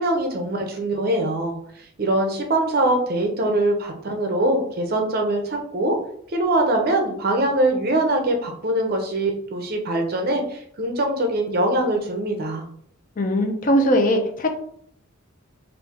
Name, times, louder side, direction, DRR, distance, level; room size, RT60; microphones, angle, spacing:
voice 1, 0.0-1.6 2.0-6.0 6.3-12.6, right 1 dB, 45° right, 3 dB, 0.5 m, -22 dB
voice 2, 13.2-14.5, equal, 40° left, 5 dB, 0.5 m, -20 dB
3.1 x 2.5 x 3.5 m, 0.64 s
head